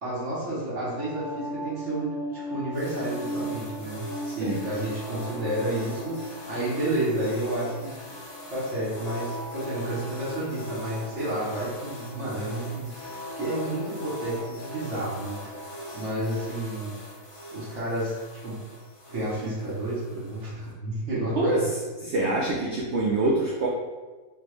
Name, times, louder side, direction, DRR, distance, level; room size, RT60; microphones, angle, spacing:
voice 1, 0.0-7.9 8.5-16.9 17.5-18.6 19.1-21.6, right 1 dB, 50° right, -10 dB, 1.4 m, -31 dB
sound 1, 0.7-16.6, left 1 dB, 60° left, 1.0 m, -39 dB
sound 2, 2.7-20.7, equal, 20° left, 1.2 m, -44 dB
voice 2, 4.3-4.6 21.4-21.6 22.0-23.7, right 2 dB, 75° right, -2 dB, 0.6 m, -25 dB
3.9 x 3.5 x 3.1 m, 1.3 s
omnidirectional pair, 1.7 m